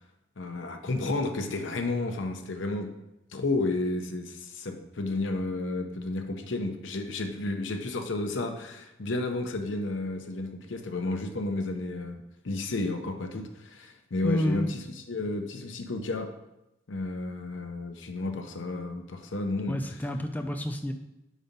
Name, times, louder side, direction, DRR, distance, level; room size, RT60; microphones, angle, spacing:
voice 1, 0.4-2.9 3.3-14.8 15.1-16.3 16.9-19.8, left 2 dB, 90° left, 5 dB, 0.7 m, -32 dB
voice 2, 14.2-14.7 19.7-20.9, equal, 10° left, 5 dB, 0.3 m, -29 dB
5.1 x 4.2 x 5.2 m, 0.90 s
head